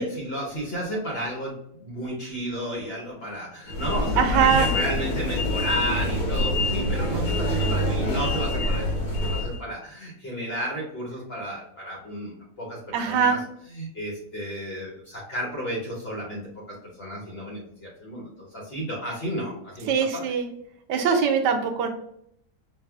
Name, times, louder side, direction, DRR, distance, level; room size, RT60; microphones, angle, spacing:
voice 1, 0.0-13.4 13.7-16.4 17.0-20.3, equal, 45° left, -4 dB, 1.0 m, -33 dB
sound 1, 3.7-9.6, left 1 dB, 85° left, 1.7 m, -25 dB
voice 2, 4.2-4.7 12.9-13.4 19.9-20.5 20.9-21.9, right 7 dB, 80° right, 6 dB, 1.2 m, -22 dB
5.4 x 2.4 x 2.3 m, 0.73 s
omnidirectional pair, 1.9 m